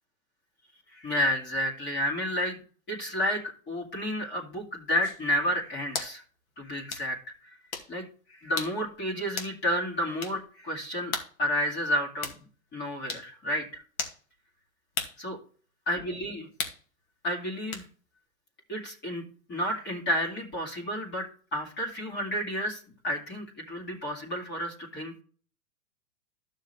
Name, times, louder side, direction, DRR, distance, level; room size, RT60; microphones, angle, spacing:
voice 1, 0.9-2.6 2.9-3.4 3.7-6.2 6.6-7.2 7.4-7.6 7.9-11.1 11.4-12.3 12.7-13.8 15.2-15.4 15.9-16.5 17.2-17.9 18.7-19.2 19.5-25.1, equal, 25° left, -1 dB, 2.3 m, -31 dB
sound 1, 5.0-5.2 5.9-6.2 6.9-7.0 7.7-7.9 8.6-8.8 9.4-9.6 10.2-10.4 11.1-11.3 12.2-12.4 13.1-13.3 14.0-14.2 14.9-15.2 16.6-16.8 17.7-17.9, left 5 dB, 70° left, 2.3 m, -34 dB
12.5 x 6.5 x 3.3 m, 0.41 s
hypercardioid pair, 140°, 43 cm